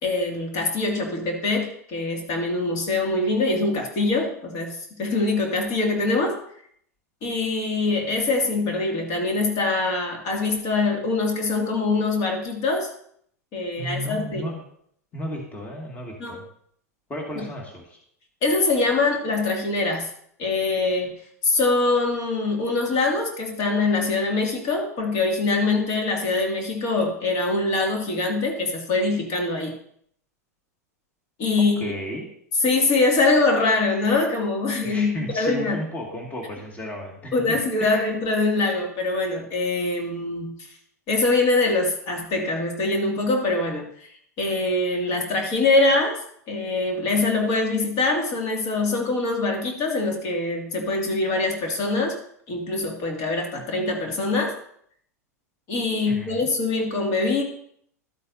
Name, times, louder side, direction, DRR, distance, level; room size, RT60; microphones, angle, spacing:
voice 1, 0.0-6.4 7.2-12.9 13.5-14.4 16.2-16.4 17.3-17.5 18.4-20.1 20.4-21.1 21.4-29.7 31.4-31.9 32.6-35.8 37.3-40.8 41.1-52.1 52.5-54.5 55.7-57.4, left 3 dB, 45° left, 0 dB, 2.5 m, -23 dB
voice 2, 13.8-14.6 15.1-16.4 17.1-18.0 31.8-32.3 34.8-38.1 56.1-56.5, equal, 20° left, 0 dB, 2.2 m, -33 dB
12.5 x 8.5 x 2.8 m, 0.67 s
figure-of-eight pair, 95°, 9 cm